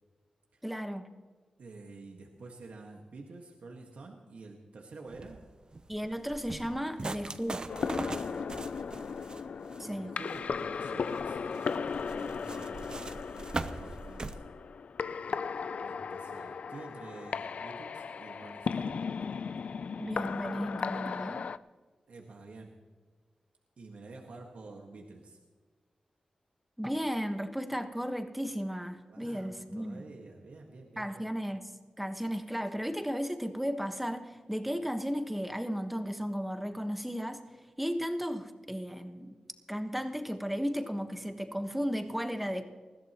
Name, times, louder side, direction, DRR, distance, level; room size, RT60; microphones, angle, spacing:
voice 1, 0.6-1.1 5.9-7.6 9.8-10.1 20.0-21.4 26.8-30.0 31.0-31.7 32.0-37.4 37.8-39.4 39.7-42.6, equal, 5° right, 6 dB, 1.3 m, -34 dB
voice 2, 1.6-5.4 8.0-8.7 8.9-9.2 9.7-14.4 15.8-19.1 22.1-22.7 23.8-25.4 29.1-31.3, right 3 dB, 80° right, 0 dB, 1.7 m, -49 dB
sound 1, 5.1-14.4, right 3 dB, 40° right, 0.8 m, -41 dB
sound 2, 7.7-21.6, left 5 dB, 70° left, 0.4 m, -36 dB
20.5 x 15.0 x 3.0 m, 1.4 s
wide cardioid pair, 85°, 2 cm